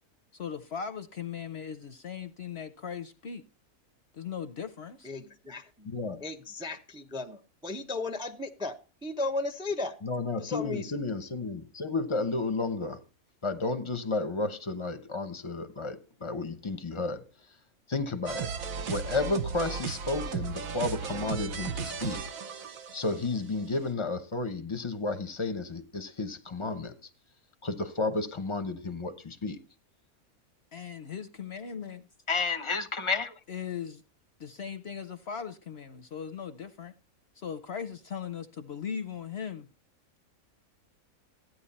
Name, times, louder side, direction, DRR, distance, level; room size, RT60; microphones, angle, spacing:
voice 1, 0.3-3.4 4.1-5.1 30.7-32.1 33.5-34.0 34.4-36.9 37.4-39.7, left 7 dB, 55° left, 0.9 m, -38 dB
voice 2, 5.0-5.9 6.2-8.8 9.0-10.0 10.4-11.0, left 3 dB, 5° right, 0.6 m, -35 dB
voice 3, 5.8-6.2 10.0-13.0 13.4-17.3 17.9-18.5 18.9-22.2 22.9-27.0 27.6-29.6 32.3-33.4, left 3 dB, 25° left, 0.7 m, -32 dB
sound 1, 18.3-23.4, right 6 dB, 65° right, 1.3 m, -35 dB
14.5 x 9.4 x 4.1 m
omnidirectional pair, 1.6 m